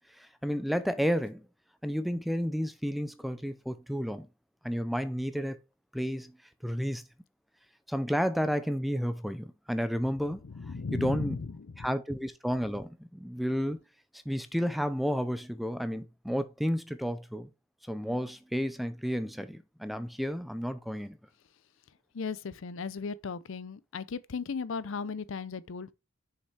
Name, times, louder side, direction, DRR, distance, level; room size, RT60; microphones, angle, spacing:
voice 1, 0.2-1.4 1.8-4.3 4.6-5.6 5.9-6.4 6.6-7.0 7.9-10.4 10.7-11.4 11.8-13.8 14.3-17.5 17.8-21.2, equal, ahead, 0.5 m, -31 dB
voice 2, 10.3-11.8 22.1-25.9, left 5 dB, 60° left, 0.5 m, -36 dB
6.7 x 5.4 x 4.6 m
head